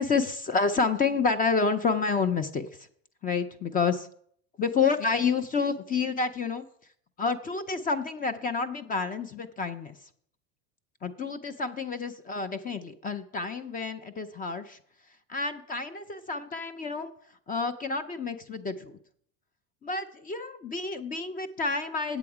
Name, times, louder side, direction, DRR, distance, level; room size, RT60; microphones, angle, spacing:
voice 1, 0.0-2.9 3.2-4.1 4.6-6.7 7.2-10.0 11.0-14.8 15.3-17.1 17.5-18.9 19.8-22.2, left 4 dB, 20° left, 12 dB, 0.5 m, -29 dB
8.1 x 7.9 x 4.8 m, 0.62 s
supercardioid pair, 120°, 41 cm